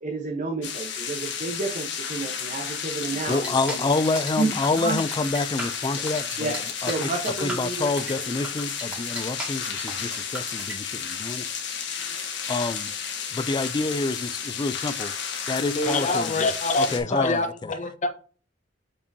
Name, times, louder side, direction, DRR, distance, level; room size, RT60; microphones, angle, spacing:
voice 1, 0.0-3.9 4.4-5.0 6.0-8.3, right 3 dB, 40° right, 1.0 m, -31 dB
sound 1, 0.6-17.0, left 7 dB, 65° left, 1.5 m, -32 dB
sound 2, 3.2-10.7, equal, 5° right, 2.1 m, -37 dB
voice 2, 3.3-6.6 6.8-7.1 7.4-11.5 12.5-12.9 13.3-15.1 15.5-17.7, left 3 dB, 25° left, 0.3 m, -28 dB
voice 3, 15.6-18.1, left 2 dB, 40° left, 0.9 m, -25 dB
6.5 x 5.6 x 2.7 m
head